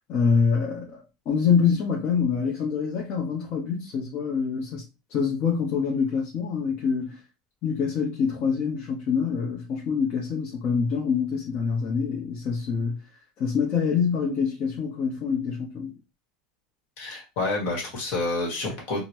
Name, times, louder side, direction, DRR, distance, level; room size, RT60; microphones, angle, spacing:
voice 1, 0.1-4.8 5.1-7.2 7.6-13.0 13.4-15.9, left 6 dB, 45° left, 0.8 m, -25 dB
voice 2, 17.0-19.0, left 2 dB, 60° left, 1.5 m, -28 dB
3.8 x 2.1 x 2.9 m
supercardioid pair, 130°, 3 cm